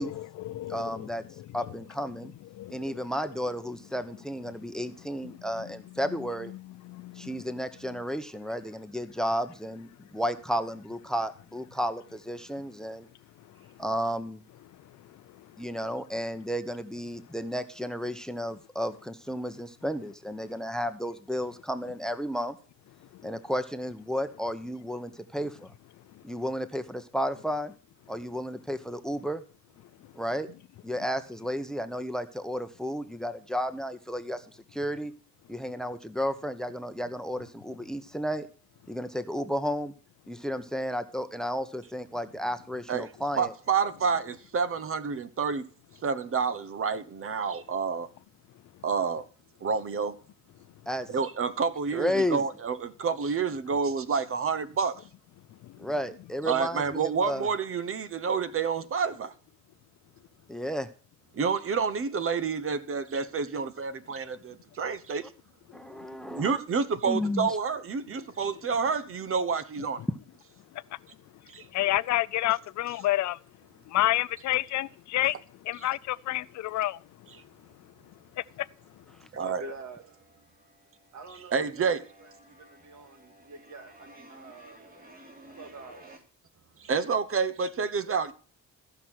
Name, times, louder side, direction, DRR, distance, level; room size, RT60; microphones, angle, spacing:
voice 1, 0.0-1.1 1.4-1.5 2.6-3.0 5.2-5.7 6.5-7.4 13.6-13.7 14.8-15.7 26.1-26.2 55.6-55.9 70.7-70.8 71.6-73.4 73.9-75.4 75.6-77.0 78.4-78.7, left 15 dB, 70° left, 0.5 m, -30 dB
voice 2, 0.7-1.2 1.5-2.3 2.7-6.5 7.2-13.1 13.8-14.4 15.6-22.6 23.2-25.7 26.2-27.7 28.1-29.4 30.1-30.5 30.8-34.4 34.7-35.1 35.5-38.5 38.9-39.9 40.3-43.5 50.9-51.1 51.9-52.4 55.8-57.5 60.5-60.9 65.7-66.6 67.0-67.6, equal, ahead, 0.9 m, -32 dB
voice 3, 43.4-45.7 46.0-48.1 48.8-49.2 49.6-50.2 51.1-55.0 56.5-59.3 61.3-65.3 66.3-70.0 71.5-71.6 79.4-79.6 81.5-82.0 86.8-88.3, right 5 dB, 45° right, 1.0 m, -29 dB
sound 1, 77.9-78.7 79.0-86.2, right 1 dB, 30° right, 3.1 m, -54 dB
voice 4, 79.3-80.0 81.1-81.9 82.2-84.8 85.6-86.2, right 3 dB, 65° right, 2.4 m, -45 dB
14.5 x 5.9 x 6.3 m
cardioid pair, 90°, 30 cm